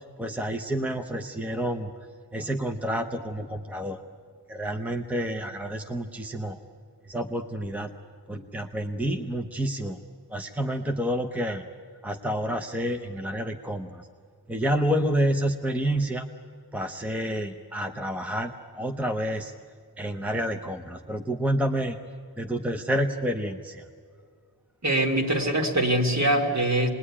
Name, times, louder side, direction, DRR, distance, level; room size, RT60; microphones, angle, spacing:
voice 1, 0.0-1.9 2.3-4.0 4.5-6.6 7.1-7.9 8.3-10.0 10.3-11.6 12.0-14.1 14.5-16.2 16.7-19.5 20.0-22.0 22.4-23.8, equal, 5° right, 5 dB, 0.8 m, -29 dB
voice 2, 24.8-26.9, right 1 dB, 45° right, 2 dB, 2.7 m, -23 dB
27.0 x 20.5 x 9.9 m, 2.1 s
wide cardioid pair, 175°, 39 cm